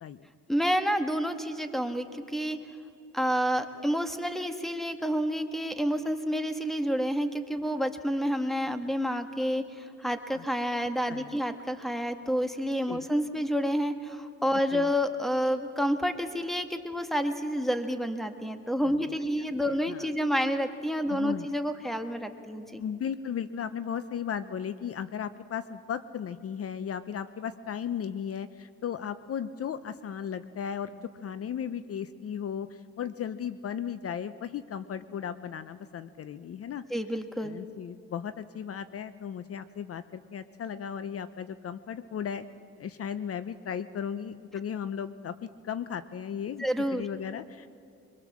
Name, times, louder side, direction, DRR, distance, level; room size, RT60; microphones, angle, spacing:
voice 1, 0.5-2.6 3.1-22.8 36.9-37.6 46.6-47.1, equal, ahead, 7 dB, 1.7 m, -29 dB
voice 2, 11.1-11.4 12.9-13.1 14.7-14.9 18.8-19.0 19.7-20.1 21.1-21.5 22.8-36.8 37.4-42.5 42.8-47.7, left 8 dB, 50° left, 13 dB, 0.7 m, -36 dB
23.5 x 22.5 x 7.4 m, 2.5 s
cardioid pair, 90°, 30 cm